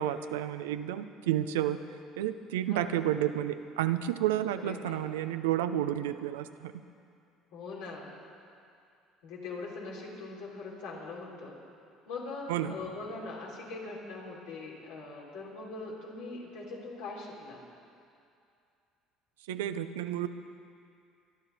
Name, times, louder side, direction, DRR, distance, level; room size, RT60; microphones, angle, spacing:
voice 1, 0.0-1.8 2.2-6.7 12.5-12.8 19.5-20.3, right 12 dB, 90° right, 11 dB, 0.6 m, -31 dB
voice 2, 2.7-3.1 4.6-5.0 7.5-8.1 9.2-11.6 12.1-17.6, left 3 dB, 85° left, -4 dB, 3.9 m, -41 dB
24.0 x 11.5 x 4.2 m, 2.5 s
supercardioid pair, 75°, 0 cm